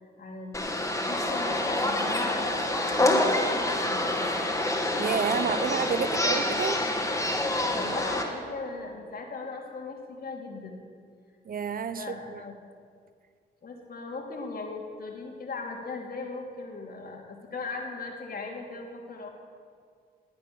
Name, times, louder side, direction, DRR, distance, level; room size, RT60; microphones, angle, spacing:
voice 1, 0.2-0.7 1.0-4.3 7.7-10.8 11.9-12.5 13.6-19.3, left 3 dB, 55° left, 1 dB, 2.9 m, -38 dB
sound 1, 0.5-8.2, left 1 dB, 15° left, 2.5 m, -27 dB
voice 2, 5.0-6.9 11.5-12.4, right 6 dB, 50° right, 13 dB, 0.9 m, -30 dB
18.5 x 9.3 x 6.9 m, 2.1 s
cardioid pair, 65°, 18 cm